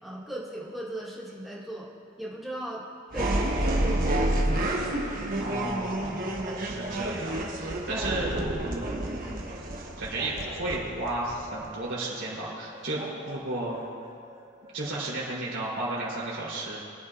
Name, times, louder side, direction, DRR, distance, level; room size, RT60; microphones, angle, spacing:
voice 1, 0.0-1.9 2.2-2.8 3.1-4.4 5.2-5.8, right 1 dB, ahead, -7 dB, 1.8 m, -38 dB
sound 1, 3.1-11.7, right 1 dB, 45° right, 1.2 m, -29 dB
sound 2, 4.4-6.0 6.2-7.0 7.3-8.8 9.2-10.9 11.5-12.1 12.6-15.0, right 1 dB, 30° right, 1.9 m, -45 dB
voice 2, 5.4-8.3 8.6-9.6 10.0-13.8 14.7-16.8, right 2 dB, 80° right, -6 dB, 3.1 m, -33 dB
23.0 x 9.1 x 2.4 m, 2.4 s
head